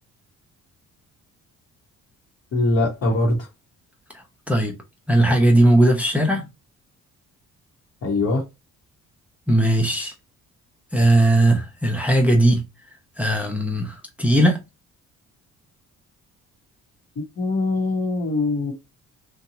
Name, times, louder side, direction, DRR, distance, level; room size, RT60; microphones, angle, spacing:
voice 1, 2.5-3.4 8.0-8.4 17.4-18.7, left 2 dB, 50° left, 1.0 m, -22 dB
voice 2, 5.1-6.5 9.5-10.1 10.9-12.6 13.2-14.6, right 1 dB, 5° right, 0.7 m, -18 dB
2.8 x 2.3 x 2.7 m
cardioid pair, 90°, 30 cm